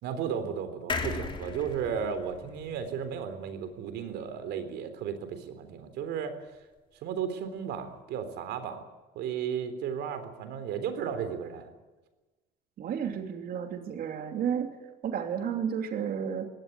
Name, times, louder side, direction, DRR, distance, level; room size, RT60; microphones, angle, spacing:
voice 1, 0.0-6.4 7.0-8.8 9.2-11.7, right 7 dB, 80° right, 10 dB, 3.6 m, -34 dB
sound 1, 0.9-4.4 4.8-4.9 5.1-5.2, left 4 dB, 30° left, 3.5 m, -38 dB
voice 2, 12.8-14.7 15.0-16.5, right 8 dB, 60° right, 5 dB, 2.8 m, -32 dB
20.5 x 17.0 x 9.7 m, 1.2 s
cardioid pair, 110°, 17 cm